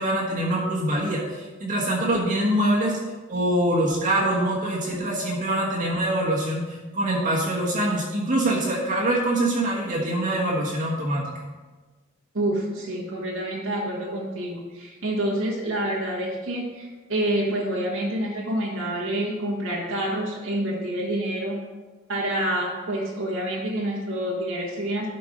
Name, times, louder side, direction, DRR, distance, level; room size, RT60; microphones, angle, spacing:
voice 1, 0.0-3.0 3.3-11.3, right 1 dB, 40° right, -5 dB, 1.4 m, -24 dB
voice 2, 12.3-21.6 22.1-25.1, right 1 dB, 80° right, -4 dB, 1.6 m, -27 dB
12.0 x 4.6 x 5.1 m, 1.3 s
head